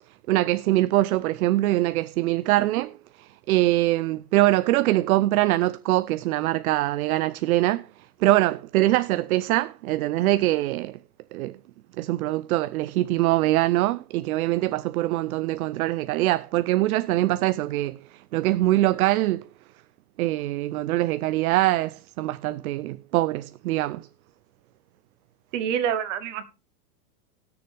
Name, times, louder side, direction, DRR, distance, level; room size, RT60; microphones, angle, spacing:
voice 1, 0.3-7.9 8.2-11.0 11.3-11.6 12.0-19.4 20.2-24.1, right 16 dB, 65° right, 0.5 m, -23 dB
voice 2, 25.5-26.5, right 9 dB, 50° right, 1.4 m, -27 dB
18.5 x 6.9 x 3.3 m
supercardioid pair, 145°, 46 cm